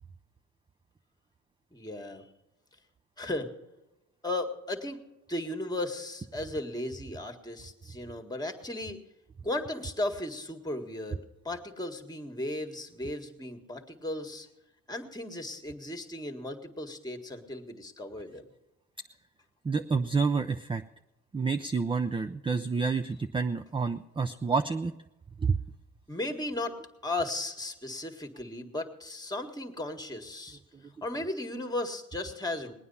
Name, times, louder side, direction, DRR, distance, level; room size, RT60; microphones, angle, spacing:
voice 1, 1.7-2.2 3.2-3.5 4.2-5.0 5.3-9.0 9.4-11.2 11.4-14.5 14.9-18.4 26.1-26.7 27.0-30.6 31.0-32.7, left 1 dB, 15° left, 6 dB, 1.7 m, -35 dB
voice 2, 19.6-20.8 21.3-24.9 25.4-25.6, right 4 dB, 15° right, 7 dB, 0.5 m, -28 dB
20.0 x 9.3 x 5.6 m, 0.98 s
cardioid pair, 90°, 30 cm